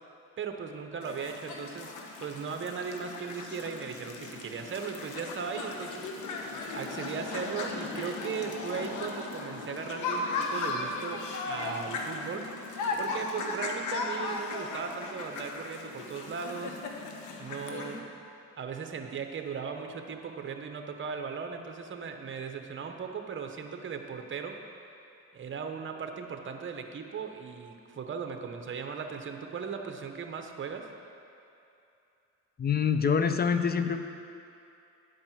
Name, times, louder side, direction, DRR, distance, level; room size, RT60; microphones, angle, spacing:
voice 1, 0.4-1.9 2.2-6.4 6.7-12.5 13.0-16.8 17.4-18.1 18.6-24.6 25.3-30.9, right 6 dB, 40° right, 5 dB, 0.9 m, -37 dB
sound 1, 1.0-18.0, left 3 dB, 80° left, 1.1 m, -37 dB
voice 2, 32.6-34.0, left 6 dB, 30° left, 8 dB, 0.6 m, -25 dB
9.8 x 5.3 x 7.2 m, 2.7 s
cardioid pair, 90°, 30 cm